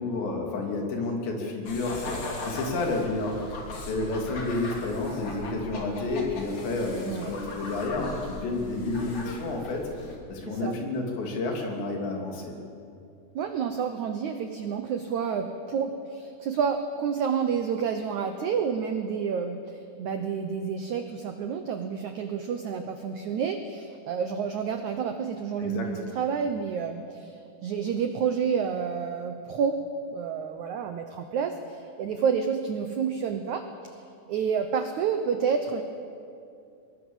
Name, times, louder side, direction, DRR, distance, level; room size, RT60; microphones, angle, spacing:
voice 1, 0.0-3.4 3.8-12.5 25.6-25.9, left 2 dB, 85° left, 1 dB, 5.1 m, -30 dB
sound 1, 1.6-10.2, left 2 dB, 40° left, 3.4 m, -39 dB
voice 2, 13.4-29.8 30.1-34.0 34.3-35.8, right 6 dB, 90° right, 7 dB, 1.6 m, -29 dB
24.0 x 21.0 x 7.3 m, 2.5 s
omnidirectional pair, 4.9 m